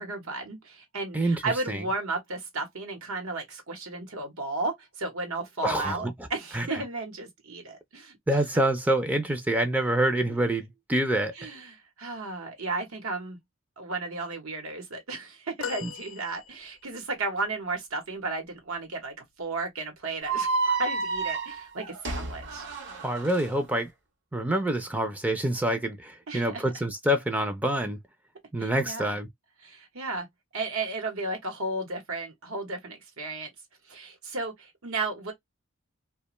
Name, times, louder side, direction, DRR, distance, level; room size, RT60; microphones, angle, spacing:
voice 1, 0.0-8.2 11.4-13.4 13.8-22.8 26.3-26.6 28.6-29.1 29.6-30.3 30.5-33.5 33.9-35.3, right 3 dB, 90° right, 0.9 m, -34 dB
voice 2, 1.1-1.8 5.6-6.1 6.5-6.7 8.3-11.3 15.8-15.9 23.0-23.9 24.3-28.0 28.5-29.3, right 1 dB, 10° right, 0.4 m, -26 dB
sound 1, 15.6-17.0 19.4-19.6 20.9-21.0, left 8 dB, 65° left, 0.3 m, -39 dB
sound 2, 20.2-23.4, right 3 dB, 60° right, 0.7 m, -30 dB
2.5 x 2.2 x 3.0 m
head